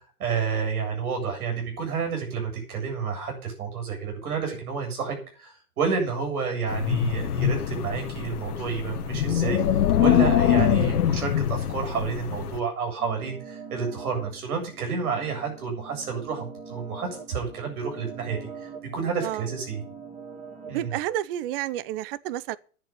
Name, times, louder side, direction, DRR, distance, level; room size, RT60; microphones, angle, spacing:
voice 1, 0.2-19.8 20.7-20.9, right 5 dB, 70° right, 7.8 m, -30 dB
Wind, 6.7-12.6, left 10 dB, 75° left, 1.7 m, -24 dB
sound 1, 13.0-21.0, right 5 dB, 15° right, 2.4 m, -43 dB
voice 2, 19.2-19.5 20.7-22.6, right 13 dB, 40° right, 0.7 m, -30 dB
10.5 x 8.4 x 8.1 m
hypercardioid pair, 130°, 45 cm